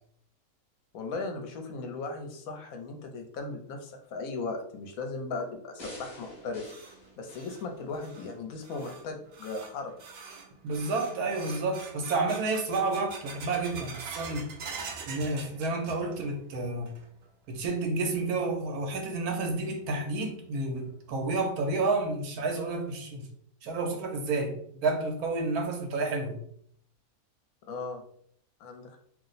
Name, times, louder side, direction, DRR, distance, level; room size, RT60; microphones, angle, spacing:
voice 1, 0.9-6.7 7.2-9.9 27.7-28.0 28.6-29.0, left 3 dB, 75° left, 4 dB, 1.0 m, -37 dB
sound 1, 5.8-8.3 8.8-8.9, left 1 dB, 35° left, 0.8 m, -47 dB
sound 2, 6.2-16.4 16.7-17.3 17.7-17.8 18.5-18.6 20.2-20.3 20.8-20.9 21.3-21.4 21.9-22.0 22.5-22.9, right 5 dB, 70° right, 0.6 m, -45 dB
voice 2, 10.6-14.5 15.0-16.9 17.5-23.3 23.6-24.6 24.8-26.4, right 3 dB, 85° right, 3 dB, 1.2 m, -30 dB
2.8 x 2.0 x 3.9 m, 0.64 s
omnidirectional pair, 1.6 m